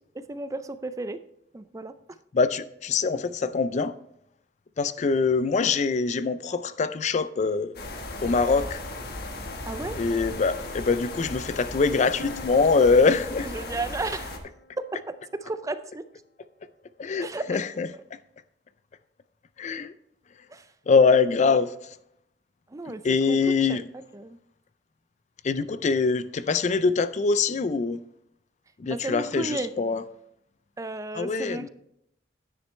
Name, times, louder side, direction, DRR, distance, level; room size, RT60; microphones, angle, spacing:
voice 1, 0.1-1.2 1.5-2.0 9.7-10.0 13.4-14.4 14.8-16.0 17.2-17.6 20.5-20.7 22.7-23.8 24.1-24.4 28.9-29.7 30.8-31.7, right 2 dB, 20° right, 0.4 m, -34 dB
voice 2, 2.3-3.9 4.8-7.7 8.2-8.8 10.0-13.5 17.0-17.9 19.6-19.9 20.9-21.7 23.0-23.8 25.4-28.0 28.8-30.0 31.1-31.7, left 4 dB, 40° left, 0.4 m, -23 dB
sound 1, 7.7-14.4, left 2 dB, 60° left, 1.3 m, -36 dB
sound 2, 12.2-15.9, left 1 dB, 85° left, 0.7 m, -47 dB
9.9 x 9.7 x 3.2 m
head